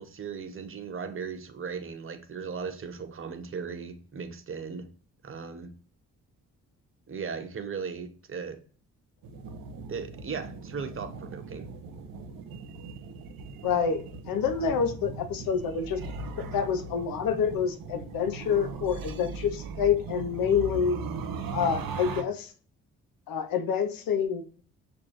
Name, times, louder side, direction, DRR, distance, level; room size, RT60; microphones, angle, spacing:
voice 1, 0.0-4.9 5.2-5.7 7.1-8.6 9.9-11.7, right 6 dB, 35° right, 0.8 m, -37 dB
sound 1, 9.2-22.2, right 4 dB, 70° right, 0.7 m, -39 dB
voice 2, 13.6-16.0 16.4-21.0 21.5-22.5 23.3-24.6, left 7 dB, 70° left, 0.7 m, -27 dB
6.1 x 2.6 x 3.0 m
supercardioid pair, 50°, 36 cm